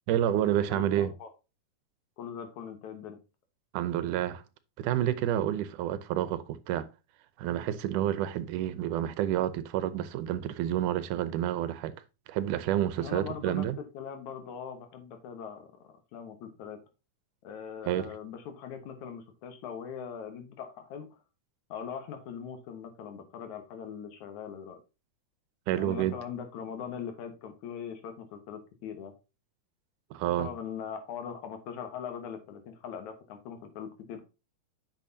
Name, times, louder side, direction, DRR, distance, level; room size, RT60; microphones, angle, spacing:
voice 1, 0.1-1.1 3.7-4.4 4.8-6.9 7.4-11.9 12.3-13.8 17.9-18.2 25.7-26.2 30.1-30.5, right 11 dB, 85° right, 2.3 m, -29 dB
voice 2, 0.7-1.3 2.2-3.2 13.0-13.7 13.9-15.7 16.1-16.8 17.4-21.1 21.7-24.8 25.7-29.1 30.4-34.2, left 7 dB, 70° left, 2.6 m, -41 dB
8.7 x 6.2 x 2.7 m
omnidirectional pair, 3.6 m